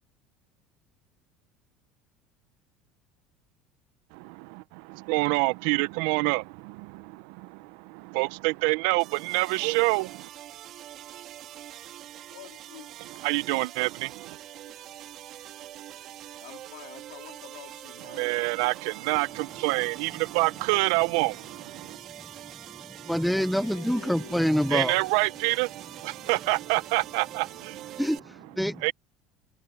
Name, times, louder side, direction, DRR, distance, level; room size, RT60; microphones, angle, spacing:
voice 1, 4.1-10.3 13.1-14.4 18.1-22.0 24.7-28.0 28.8-28.9, right 25 dB, 75° right, 0.6 m, -27 dB
sound 1, 9.0-28.2, right 12 dB, 50° right, 2.0 m, -44 dB
voice 2, 12.3-12.9 13.5-13.6 14.7-14.8 16.4-18.3 22.9-23.0 23.5-24.8, left 24 dB, 90° left, 3.3 m, -48 dB
voice 3, 22.7-24.9 28.0-28.9, equal, ahead, 0.5 m, -26 dB
cardioid pair, 140°, 0 cm